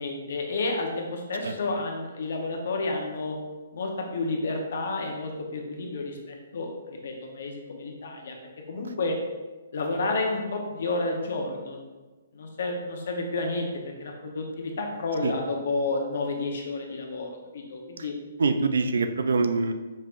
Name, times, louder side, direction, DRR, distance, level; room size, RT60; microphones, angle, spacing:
voice 1, 0.0-3.4 3.7-6.7 7.0-8.3 8.7-9.2 9.7-11.8 12.3-13.7 14.0-18.2, left 3 dB, 65° left, 2 dB, 0.9 m, -30 dB
voice 2, 18.4-19.7, right 4 dB, 75° right, 8 dB, 0.4 m, -24 dB
5.3 x 3.5 x 2.5 m, 1.2 s
hypercardioid pair, 145°, 0 cm